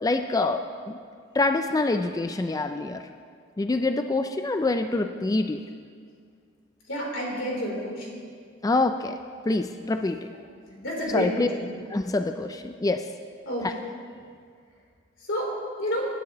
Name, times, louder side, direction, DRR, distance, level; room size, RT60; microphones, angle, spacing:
voice 1, 0.0-1.0 1.3-3.0 3.6-5.6 8.6-9.2 9.5-10.3 11.1-11.5 11.9-13.1 13.6-13.7, left 2 dB, 20° left, 7 dB, 0.3 m, -26 dB
voice 2, 6.9-8.2 10.8-11.8 13.5-13.7 15.3-15.5 15.8-16.0, equal, 85° left, -3 dB, 3.6 m, -29 dB
19.5 x 10.0 x 3.0 m, 2.1 s
head